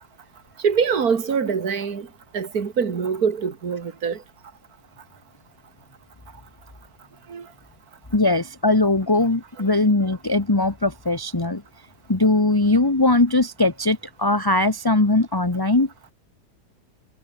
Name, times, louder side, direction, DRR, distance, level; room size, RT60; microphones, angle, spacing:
voice 1, 0.6-2.1 2.3-4.2 7.3-7.5, right 6 dB, 65° right, 2.6 m, -23 dB
voice 2, 8.1-11.6 12.1-15.9, left 2 dB, 15° left, 1.4 m, -20 dB
omnidirectional pair, 1.7 m